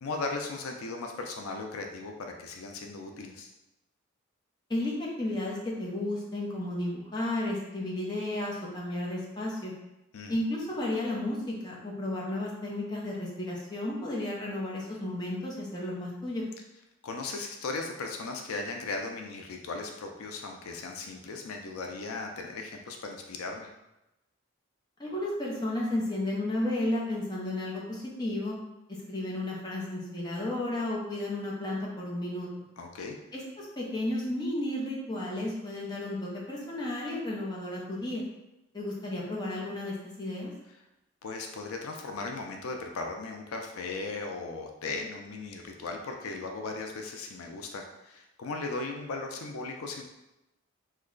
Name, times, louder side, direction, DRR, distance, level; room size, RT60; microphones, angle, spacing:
voice 1, 0.0-3.5 10.1-10.4 17.0-23.7 32.8-33.2 41.2-50.0, left 3 dB, 85° left, 3 dB, 0.4 m, -37 dB
voice 2, 4.7-9.7 10.3-16.4 25.0-28.6 29.1-32.5 33.3-38.2 38.7-40.5, left 1 dB, 20° left, -4 dB, 0.6 m, -33 dB
3.1 x 2.2 x 3.7 m, 0.93 s
head